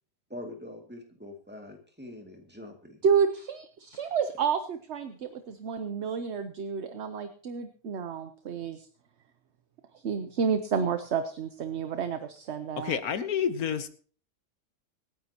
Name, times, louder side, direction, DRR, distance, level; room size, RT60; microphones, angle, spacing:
voice 1, 0.3-3.0, left 1 dB, 5° right, 1 dB, 2.3 m, -44 dB
voice 2, 3.0-8.9 9.9-13.0, right 6 dB, 55° right, 9 dB, 1.0 m, -30 dB
voice 3, 12.8-13.9, left 8 dB, 80° left, 11 dB, 1.5 m, -29 dB
25.5 x 9.5 x 2.9 m, 0.42 s
omnidirectional pair, 1.5 m